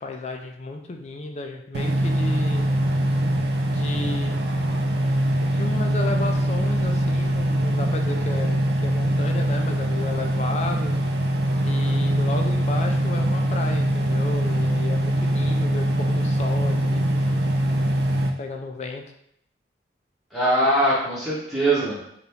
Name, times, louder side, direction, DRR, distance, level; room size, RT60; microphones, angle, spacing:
voice 1, 0.0-2.7 3.7-4.4 5.3-11.0 11.6-17.0 18.4-19.0, left 3 dB, 35° left, 3 dB, 0.4 m, -33 dB
sound 1, 1.7-18.3, right 1 dB, 60° right, 0.4 m, -23 dB
voice 2, 20.3-22.0, right 1 dB, ahead, -9 dB, 0.9 m, -21 dB
2.8 x 2.6 x 3.4 m, 0.74 s
head